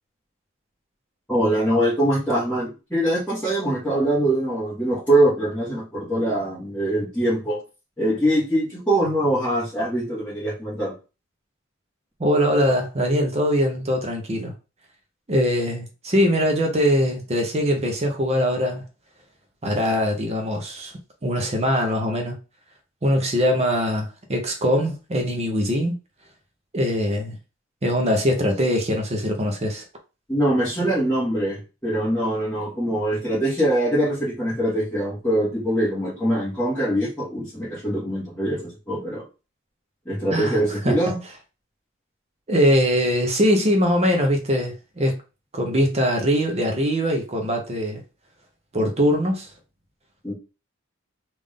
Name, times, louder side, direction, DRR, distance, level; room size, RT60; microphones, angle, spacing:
voice 1, 1.3-7.6 8.0-10.9 30.3-39.2 40.0-41.2 50.2-50.3, right 1 dB, 5° left, 1.5 m, -23 dB
voice 2, 12.2-14.5 15.3-18.8 19.6-20.9 21.2-22.4 23.0-25.9 26.7-27.4 27.8-29.8 40.3-41.0 42.5-45.2 45.5-48.0 48.7-49.5, equal, 30° right, 0.7 m, -22 dB
3.5 x 2.5 x 3.6 m
head